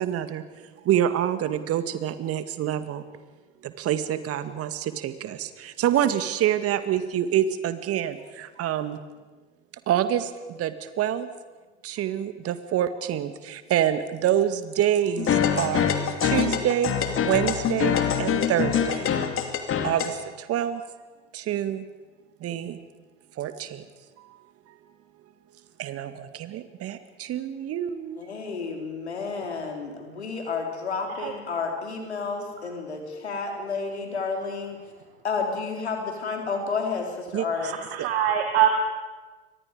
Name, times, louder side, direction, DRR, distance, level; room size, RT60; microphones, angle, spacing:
voice 1, 0.0-3.0 3.6-9.0 9.9-11.3 11.8-15.9 16.2-16.9 17.2-19.1 19.8-20.8 21.3-21.9 22.4-22.8 23.4-23.9 24.2-24.4 25.8-28.2 37.3-37.7 38.0-38.1, right 10 dB, 45° right, 11 dB, 2.0 m, -27 dB
sound 1, 15.2-20.1, left 8 dB, 40° left, 2.9 m, -24 dB
voice 2, 28.2-34.8 35.2-37.1 37.3-37.8, left 4 dB, 85° left, 2 dB, 4.1 m, -31 dB
voice 3, 37.6-38.7, right 10 dB, 70° right, 4 dB, 2.2 m, -24 dB
30.0 x 24.5 x 5.1 m, 1.3 s
figure-of-eight pair, 65°, 32 cm